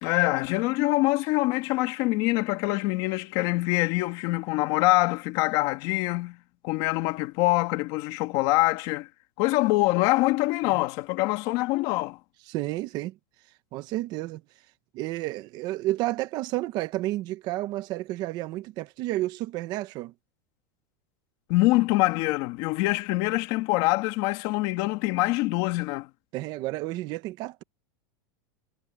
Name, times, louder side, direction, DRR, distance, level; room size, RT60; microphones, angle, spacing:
voice 1, 0.0-6.4 6.6-9.1 9.4-12.2 21.5-26.1, left 20 dB, 45° left, 2.2 m, -24 dB
voice 2, 12.5-13.1 13.7-14.4 14.9-20.1 26.3-27.6, right 17 dB, 35° right, 1.0 m, -31 dB
supercardioid pair, 170°, 11 cm